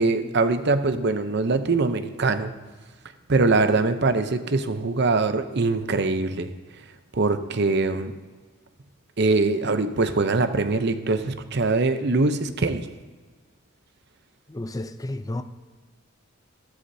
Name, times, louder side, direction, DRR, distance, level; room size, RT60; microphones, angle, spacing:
voice 1, 0.0-2.5 3.3-6.5 7.1-8.1 9.2-12.8, right 3 dB, 55° right, 0.7 m, -22 dB
voice 2, 14.5-15.4, left 1 dB, 15° left, 0.5 m, -31 dB
13.5 x 13.0 x 2.8 m
head